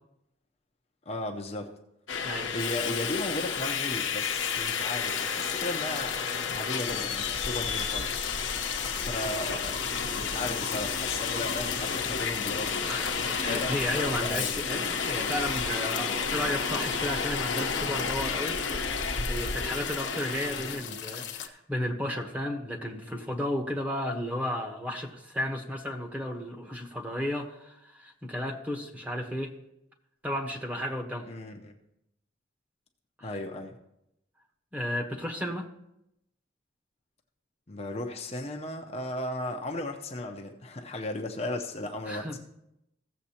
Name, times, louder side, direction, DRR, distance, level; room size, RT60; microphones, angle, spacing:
voice 1, 1.1-1.7 2.5-8.3 8.9-9.8 10.1-13.0 13.5-14.6 20.6-21.0 31.3-31.7 33.2-33.7 37.7-42.4, left 1 dB, 35° left, 2 dB, 0.7 m, -36 dB
Subway metro underground, 2.1-20.8, left 5 dB, 90° left, 1.0 m, -31 dB
sound 1, 4.4-21.5, left 8 dB, 60° left, 1.0 m, -40 dB
voice 2, 12.8-18.6 19.3-29.5 30.2-31.3 33.2-33.3 34.7-35.7 42.1-42.4, left 1 dB, 10° right, 2 dB, 1.1 m, -33 dB
16.5 x 7.3 x 2.9 m, 0.84 s
head